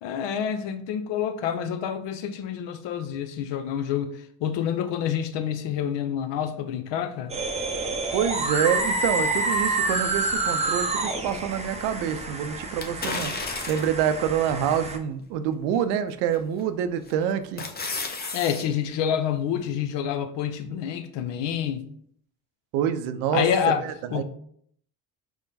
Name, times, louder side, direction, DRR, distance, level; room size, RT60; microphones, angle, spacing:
voice 1, 0.0-7.3 18.3-21.9 23.3-23.8 24.1-24.2, left 8 dB, 65° left, 0.6 m, -28 dB
sound 1, 7.3-15.0, right 2 dB, 15° right, 0.6 m, -28 dB
voice 2, 8.1-13.3 13.7-17.6 22.7-23.4 23.8-24.2, right 9 dB, 80° right, 0.6 m, -26 dB
sound 2, 12.8-14.0 14.6-14.7 16.3-16.7 17.1-18.6 19.0-19.1, left 3 dB, 20° left, 0.7 m, -32 dB
4.6 x 2.2 x 4.0 m
supercardioid pair, 65°, 47 cm